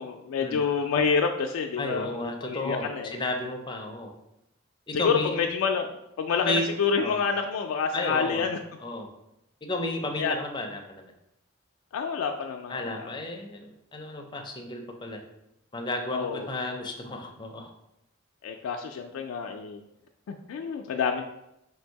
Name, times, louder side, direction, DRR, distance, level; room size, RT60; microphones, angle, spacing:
voice 1, 0.0-3.1 4.9-8.6 10.2-10.4 11.9-13.1 16.1-16.5 18.4-19.8 20.3-21.2, left 5 dB, 85° left, 4 dB, 0.3 m, -28 dB
voice 2, 1.8-4.1 4.9-5.4 6.4-7.2 7.9-8.5 8.8-9.1 9.6-11.0 12.7-15.2 15.7-17.7, left 2 dB, 25° left, 3 dB, 0.4 m, -33 dB
3.3 x 2.6 x 4.5 m, 0.84 s
head